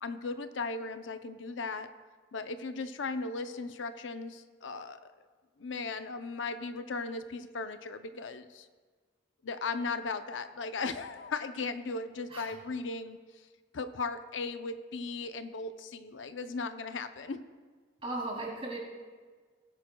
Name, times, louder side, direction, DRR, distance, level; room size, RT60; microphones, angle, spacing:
voice 1, 0.0-1.9 2.3-5.1 5.6-8.7 9.4-13.2 13.7-17.4, left 4 dB, 85° left, 9 dB, 0.6 m, -37 dB
voice 2, 18.0-18.8, right 2 dB, 30° right, -2 dB, 2.5 m, -36 dB
18.0 x 10.5 x 2.3 m, 1.5 s
head